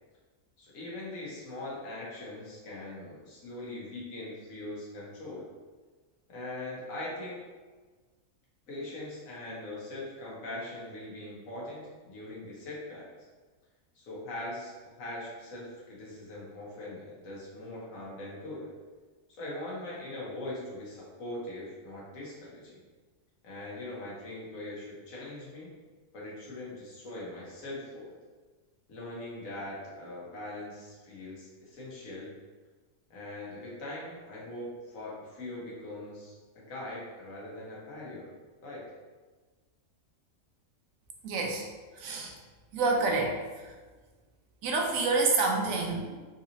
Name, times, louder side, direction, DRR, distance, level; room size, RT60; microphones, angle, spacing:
voice 1, 0.6-5.5 6.3-7.4 8.7-13.1 13.9-18.7 19.4-22.8 23.4-25.7 26.1-28.1 28.9-32.3 33.1-38.3 38.6-38.8, left 1 dB, 70° left, -5 dB, 1.4 m, -41 dB
voice 2, 41.2-41.6 42.0-42.3 42.7-43.4 44.6-46.2, right 3 dB, 80° right, 0 dB, 1.0 m, -27 dB
3.9 x 2.8 x 2.6 m, 1.4 s
omnidirectional pair, 1.4 m